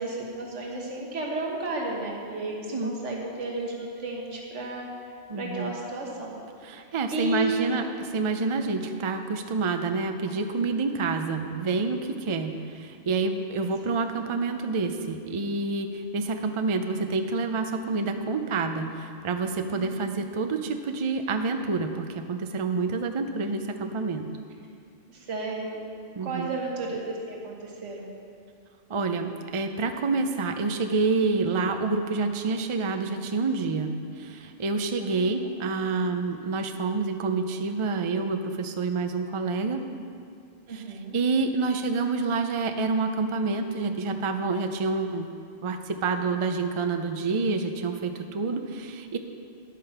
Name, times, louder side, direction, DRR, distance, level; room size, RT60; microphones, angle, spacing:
voice 1, 0.0-4.9 5.4-6.3 6.7-7.7 13.5-14.0 19.7-20.2 25.1-25.8 26.2-28.1 35.0-35.3 40.7-41.2, right 2 dB, 70° right, -1 dB, 1.7 m, -33 dB
voice 2, 5.3-5.7 6.6-24.3 26.1-26.5 28.9-39.8 40.7-40.8 41.1-45.3 45.6-49.2, right 4 dB, 50° right, 6 dB, 0.3 m, -28 dB
10.5 x 8.4 x 5.8 m, 2.3 s
omnidirectional pair, 1.3 m